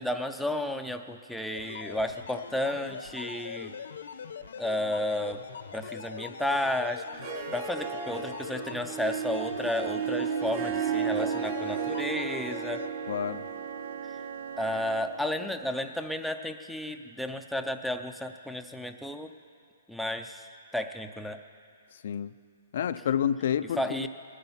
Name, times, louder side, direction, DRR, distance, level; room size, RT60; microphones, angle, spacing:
voice 1, 0.0-3.7 4.6-5.4 5.7-7.3 7.5-12.9 14.6-19.3 19.9-21.4 23.8-24.1, left 1 dB, ahead, 4 dB, 0.5 m, -32 dB
sound 1, 1.5-12.9, left 6 dB, 75° left, 0.9 m, -42 dB
Harp, 7.1-15.7, right 7 dB, 40° right, 1.3 m, -34 dB
Wind instrument woodwind instrument, 10.3-15.3, right 7 dB, 75° right, 0.5 m, -41 dB
voice 2, 13.1-13.4 22.0-22.3 22.7-24.1, left 9 dB, 60° left, 12 dB, 0.4 m, -29 dB
20.0 x 11.0 x 5.7 m, 2.3 s
hypercardioid pair, 155°, 0 cm